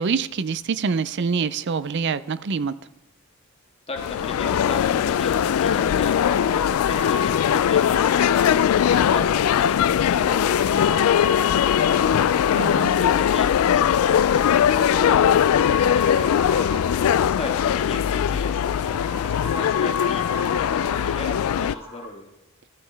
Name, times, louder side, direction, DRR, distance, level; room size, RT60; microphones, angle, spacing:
voice 1, 0.0-2.7 12.5-12.9, right 5 dB, 55° right, 0.5 m, -25 dB
voice 2, 3.9-16.8 17.4-22.3, left 2 dB, 25° left, 1.6 m, -37 dB
sound 1, 4.0-21.7, left 9 dB, 75° left, 0.3 m, -20 dB
sound 2, 5.2-22.0, left 4 dB, 15° right, 2.0 m, -34 dB
sound 3, 9.5-9.8 10.1-10.4 10.6-11.0 11.3-11.6 11.9-12.2 12.5-12.7 13.0-14.4 14.8-15.6 16.0-16.9 17.2-17.4, left 4 dB, 50° left, 2.3 m, -49 dB
14.0 x 7.6 x 3.4 m
head